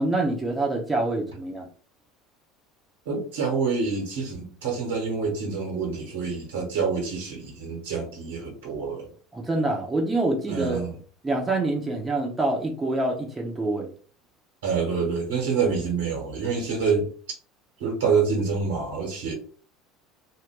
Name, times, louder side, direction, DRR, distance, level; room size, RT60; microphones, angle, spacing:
voice 1, 0.0-1.7 9.3-10.8 11.2-13.9, right 2 dB, 20° right, 0 dB, 0.8 m, -26 dB
voice 2, 3.0-9.1 10.5-10.9 14.6-17.1 17.8-19.3, right 5 dB, 70° right, 0 dB, 1.2 m, -27 dB
2.6 x 2.1 x 3.6 m, 0.42 s
figure-of-eight pair, 70°, 0 cm